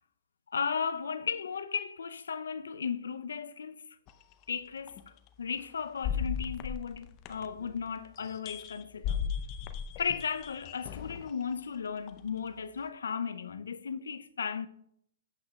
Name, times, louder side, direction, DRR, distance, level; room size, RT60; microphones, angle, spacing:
voice 1, 0.5-3.8 4.5-5.0 5.4-9.2 10.0-14.7, left 6 dB, 80° left, 0.5 m, -35 dB
sound 1, 4.1-4.2 4.9-5.0 6.0-7.7 8.2-11.3 12.1-12.2, left 7 dB, 35° left, 0.6 m, -36 dB
15.5 x 5.9 x 2.3 m
hypercardioid pair, 125°, 0 cm